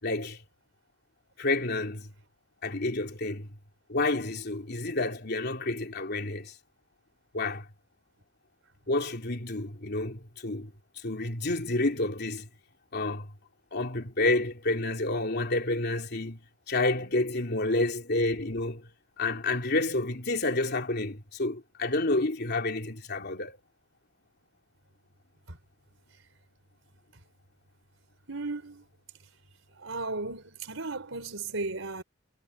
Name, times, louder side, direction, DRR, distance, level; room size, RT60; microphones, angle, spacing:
voice 1, 0.0-0.4 1.4-2.1 2.6-3.5 3.9-6.5 7.3-7.7 8.9-12.5 12.9-13.3 13.7-16.4 16.7-18.9 19.2-23.6, left 2 dB, 55° left, 3.2 m, -29 dB
voice 2, 28.3-28.8 29.8-32.0, right 3 dB, 85° right, 4.2 m, -35 dB
head